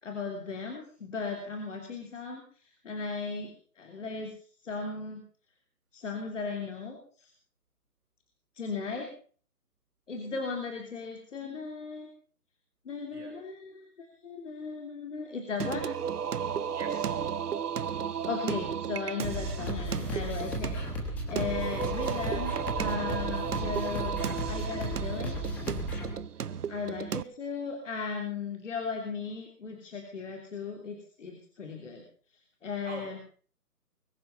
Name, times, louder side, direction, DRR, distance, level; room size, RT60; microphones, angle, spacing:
voice 1, 0.0-4.4 4.6-5.2 5.9-7.3 8.6-9.1 10.1-12.1 12.9-15.9 18.2-25.4 26.7-32.0 32.6-33.2, left 4 dB, 50° left, 3 dB, 3.3 m, -37 dB
Singing, 15.6-27.2, right 7 dB, 75° right, 0.8 m, -34 dB
voice 2, 16.7-17.2 26.3-26.7 32.8-33.2, right 4 dB, 45° right, 2 dB, 5.6 m, -45 dB
sound 1, 19.2-26.1, equal, 5° left, 1.2 m, -35 dB
22.0 x 10.5 x 5.5 m, 0.43 s
figure-of-eight pair, 155°, 47 cm